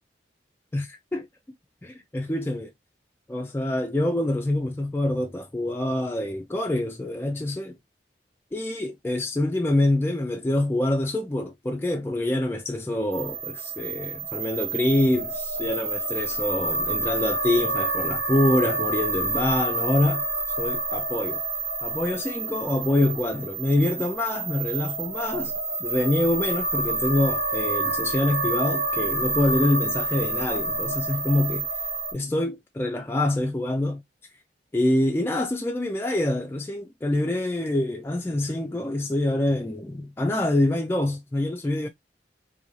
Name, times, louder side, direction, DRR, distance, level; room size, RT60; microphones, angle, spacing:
voice 1, 0.7-1.3 1.8-2.7 3.3-7.8 8.5-20.2 20.6-21.4 21.8-25.5 25.8-31.7 32.1-34.0 34.7-41.9, left 1 dB, 15° left, 0.3 m, -25 dB
sound 1, 13.1-32.1, right 3 dB, 85° right, 1.2 m, -28 dB
3.0 x 2.7 x 2.5 m
head